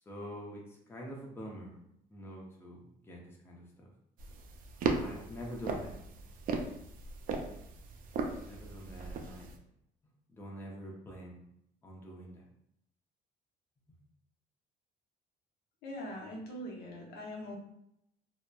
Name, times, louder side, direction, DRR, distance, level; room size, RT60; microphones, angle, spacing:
voice 1, 0.1-1.8 2.1-3.9 4.8-6.0 8.3-9.5 10.3-11.4 11.8-12.5 13.9-14.0, equal, 15° left, -2 dB, 0.5 m, -46 dB
sound 1, 4.2-9.6, right 4 dB, 55° right, 0.4 m, -37 dB
voice 2, 15.8-17.6, equal, 70° left, -1 dB, 0.8 m, -42 dB
2.9 x 2.1 x 2.2 m, 0.78 s
cardioid pair, 110°, 17 cm